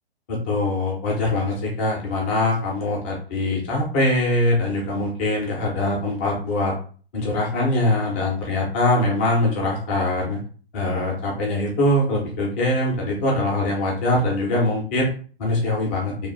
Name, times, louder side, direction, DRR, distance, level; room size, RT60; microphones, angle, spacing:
voice 1, 0.3-6.7 7.1-10.4 10.7-15.1 15.4-16.1, left 1 dB, 10° left, -2 dB, 0.3 m, -22 dB
2.6 x 2.1 x 2.9 m, 0.41 s
figure-of-eight pair, 125°, 31 cm